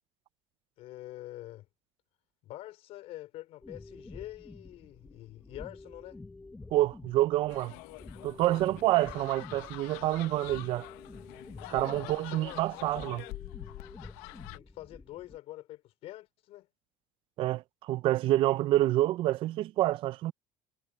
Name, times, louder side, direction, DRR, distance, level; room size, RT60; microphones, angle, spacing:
voice 1, 0.8-1.7 2.4-6.2 11.8-13.1 14.5-16.7, left 15 dB, 60° left, 4.3 m, -46 dB
sound 1, 3.6-15.4, left 3 dB, 10° left, 0.7 m, -50 dB
voice 2, 6.7-7.7 8.2-10.9 11.7-13.2 17.4-20.3, right 15 dB, 45° right, 0.4 m, -27 dB
sound 2, 7.5-14.6, left 21 dB, 80° left, 0.9 m, -46 dB
cardioid pair, 135°, 12 cm